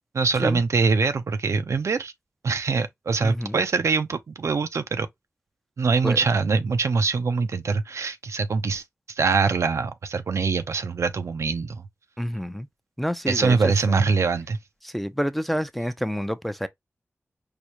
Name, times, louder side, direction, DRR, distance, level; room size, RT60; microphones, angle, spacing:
voice 1, 0.1-2.1 2.4-5.1 5.8-8.8 9.2-11.8 13.3-14.6, right 4 dB, 80° right, 0.4 m, -23 dB
voice 2, 3.2-3.6 6.0-6.2 12.2-12.7 13.0-14.1 14.8-16.7, equal, ahead, 0.4 m, -28 dB
4.8 x 2.0 x 2.8 m
wide cardioid pair, 70°, 5 cm